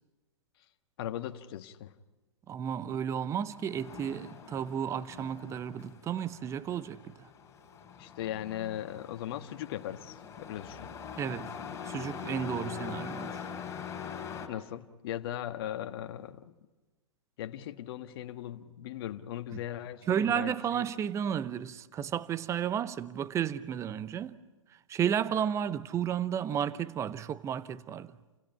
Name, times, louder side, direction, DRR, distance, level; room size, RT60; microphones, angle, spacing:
voice 1, 1.0-1.9 8.0-10.9 14.5-16.5 17.4-20.8, left 11 dB, 45° left, 1.4 m, -38 dB
voice 2, 2.5-7.3 11.2-11.5 11.9-13.5 20.1-24.4 24.9-28.1, right 9 dB, 20° right, 0.8 m, -32 dB
Truck, 3.4-14.5, left 7 dB, 20° left, 3.7 m, -43 dB
29.5 x 28.0 x 5.8 m
figure-of-eight pair, 115°, 16 cm